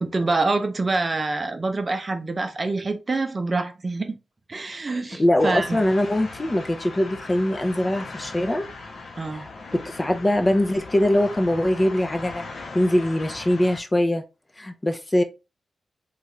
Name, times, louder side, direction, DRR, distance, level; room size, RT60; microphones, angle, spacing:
voice 1, 0.0-4.2 4.5-5.8 9.2-9.5, right 3 dB, 40° right, 0.6 m, -26 dB
voice 2, 5.1-8.6 9.3-14.2 14.6-15.2, left 1 dB, 25° left, 0.5 m, -22 dB
sound 1, 5.4-13.8, left 3 dB, 70° left, 0.7 m, -39 dB
2.7 x 2.4 x 3.1 m
cardioid pair, 60°, 0 cm